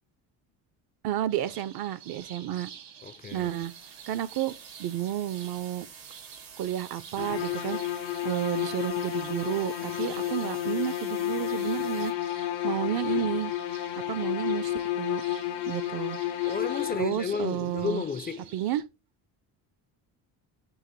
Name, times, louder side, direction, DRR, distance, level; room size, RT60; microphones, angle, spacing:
voice 1, 1.0-2.7 3.3-3.7 4.1-4.5 4.8-5.9 6.6-12.1 12.4-13.5 14.1-15.2 15.7-16.2 17.0-18.0 18.5-18.8, right 12 dB, 55° right, 0.5 m, -31 dB
sound 1, 1.3-18.8, right 8 dB, 70° right, 1.1 m, -50 dB
voice 2, 3.0-3.5 16.5-18.5, left 6 dB, 20° left, 0.3 m, -32 dB
sound 2, 3.3-12.1, right 6 dB, 85° right, 1.3 m, -49 dB
sound 3, 7.2-17.4, left 13 dB, 85° left, 0.5 m, -31 dB
6.3 x 2.5 x 3.1 m
supercardioid pair, 65°, 47 cm